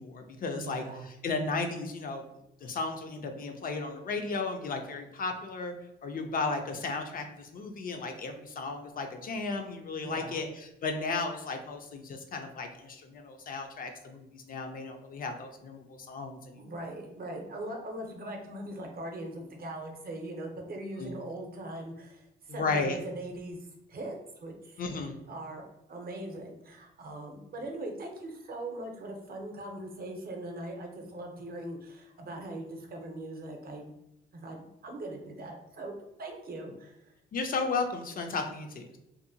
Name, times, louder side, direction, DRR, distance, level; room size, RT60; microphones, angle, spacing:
voice 1, 0.0-2.2 2.6-5.7 6.0-16.6 21.0-21.1 22.5-23.0 24.8-25.2 37.3-39.0, left 3 dB, 45° left, 5 dB, 0.4 m, -34 dB
voice 2, 0.5-1.1 10.0-10.4 16.6-24.8 25.3-25.6 25.9-33.9 34.3-37.1, right 1 dB, 50° right, 2 dB, 0.6 m, -41 dB
2.6 x 2.1 x 2.6 m, 0.86 s
cardioid pair, 90°, 20 cm